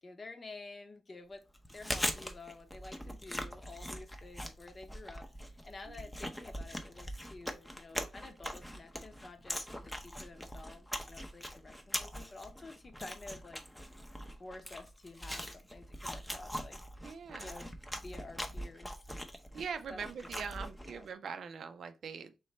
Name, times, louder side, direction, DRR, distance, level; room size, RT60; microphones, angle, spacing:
voice 1, 0.0-1.4 1.7-13.6 14.4-16.8 17.4-17.7 17.9-19.0 19.9-20.3 20.9-21.1, left 3 dB, 35° left, 0.8 m, -50 dB
Chewing mastication, 1.5-21.1, equal, 10° left, 0.6 m, -42 dB
voice 2, 17.0-17.6 19.5-22.4, right 6 dB, 75° right, 0.5 m, -42 dB
3.2 x 3.1 x 4.2 m
wide cardioid pair, 120°, 0 cm